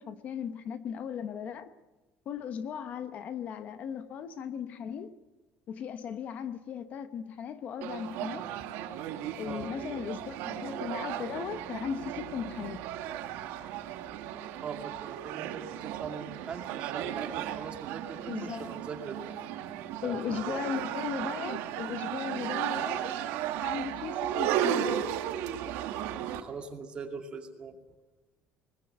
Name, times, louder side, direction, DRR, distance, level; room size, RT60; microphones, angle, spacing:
voice 1, 0.0-1.7 2.3-5.1 5.7-8.4 9.4-12.8 18.3-18.7 20.0-23.1 23.6-25.0, left 7 dB, 40° left, 0.9 m, -37 dB
sound 1, 7.8-26.4, right 11 dB, 80° right, 1.9 m, -35 dB
voice 2, 14.6-19.3 20.0-20.7 26.2-27.8, right 5 dB, 25° right, 2.4 m, -41 dB
21.0 x 21.0 x 7.9 m
cardioid pair, 180°, 4 cm